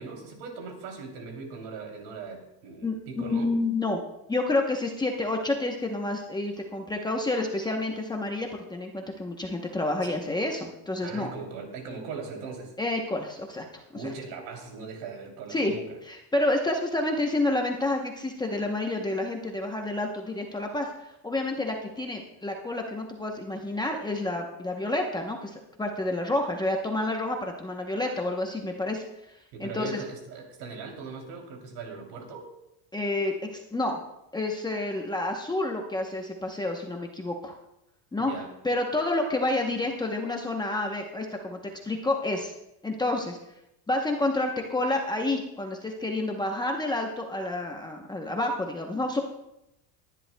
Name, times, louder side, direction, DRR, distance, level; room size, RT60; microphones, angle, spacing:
voice 1, 0.0-3.5 10.0-10.2 11.0-12.7 13.9-16.0 29.5-32.5 38.3-38.5, right 4 dB, 70° right, 2 dB, 3.0 m, -39 dB
voice 2, 2.8-4.0 4.3-11.3 12.8-14.1 15.5-15.7 16.1-20.9 21.2-30.0 32.9-34.0 34.3-37.6 38.1-38.3 38.6-41.6 41.8-42.5 42.8-43.4 43.9-49.2, left 2 dB, 10° left, 1 dB, 0.8 m, -29 dB
20.0 x 11.0 x 2.2 m, 0.86 s
cardioid pair, 150°, 46 cm